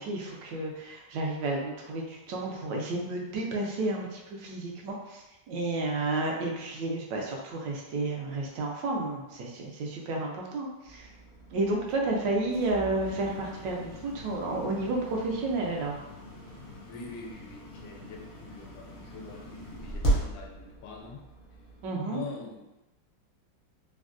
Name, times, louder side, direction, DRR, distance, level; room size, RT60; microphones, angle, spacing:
voice 1, 0.0-11.1 11.5-16.0 21.8-22.2, right 2 dB, 75° right, -1 dB, 1.2 m, -31 dB
sound 1, 10.8-21.9, right 1 dB, 65° left, 0.5 m, -37 dB
voice 2, 16.9-21.2 22.1-22.9, left 4 dB, 85° left, -1 dB, 1.3 m, -44 dB
3.3 x 2.2 x 2.4 m, 0.99 s
omnidirectional pair, 2.0 m